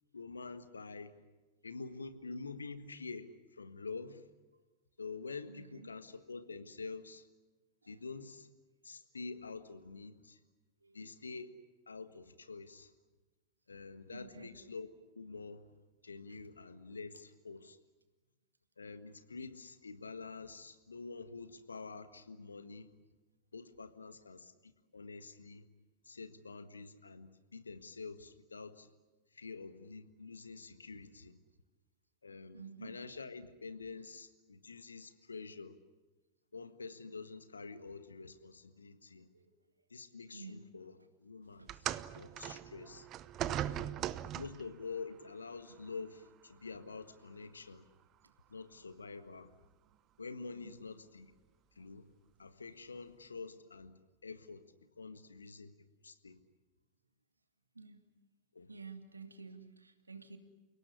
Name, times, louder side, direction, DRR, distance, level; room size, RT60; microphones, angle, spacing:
voice 1, 0.1-1.2 1.6-4.3 5.0-7.3 7.9-8.5 8.8-10.4 10.9-11.5 11.9-12.9 13.7-14.9 15.1-15.7 16.0-17.8 18.8-22.9 23.5-25.7 26.0-28.9 29.3-31.4 32.2-35.7 36.5-39.3 39.9-40.9 41.2-41.9 42.1-43.1 43.6-43.9 44.3-47.8 48.5-49.5 50.2-51.3 51.7-52.1 52.4-53.9 54.2-54.6 55.0-55.7 56.0-56.4 58.5-58.7, left 4 dB, 75° left, 11 dB, 1.6 m, -47 dB
voice 2, 5.5-5.9 7.8-7.9 10.8-11.0 14.1-14.5 16.3-16.4 32.5-32.9 39.3-39.5 40.3-40.6 41.6-41.9 48.2-48.3 50.5-50.7 57.7-58.0 58.7-60.4, right 4 dB, 80° right, 8 dB, 2.2 m, -51 dB
sound 1, 41.7-44.7 45.7-45.9 46.7-46.8, right 12 dB, 35° right, 0.8 m, -39 dB
29.0 x 18.0 x 9.9 m, 1.2 s
figure-of-eight pair, 90°, 0 cm